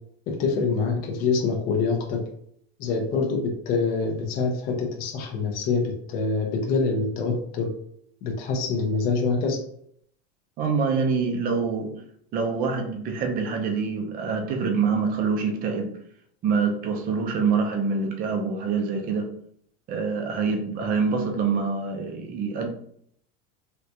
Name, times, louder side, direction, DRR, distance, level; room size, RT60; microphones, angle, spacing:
voice 1, 0.3-2.3 2.8-7.7 8.2-9.6, left 4 dB, 30° left, 1 dB, 0.4 m, -25 dB
voice 2, 10.6-11.9 12.3-15.9 16.4-19.3 19.9-22.7, right 5 dB, 25° right, 2 dB, 0.5 m, -25 dB
3.4 x 2.4 x 2.7 m, 0.66 s
supercardioid pair, 160°, 32 cm